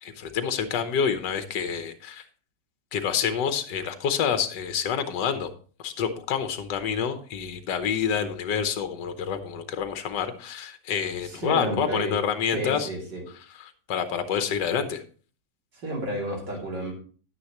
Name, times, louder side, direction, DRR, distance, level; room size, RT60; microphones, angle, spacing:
voice 1, 0.0-2.2 2.9-5.5 5.8-12.9 13.6-15.0, left 7 dB, 80° left, 9 dB, 1.5 m, -28 dB
voice 2, 11.2-12.2 12.5-13.2 15.7-16.9, right 1 dB, 75° right, -1 dB, 3.6 m, -31 dB
10.0 x 9.8 x 3.0 m, 0.41 s
omnidirectional pair, 1.9 m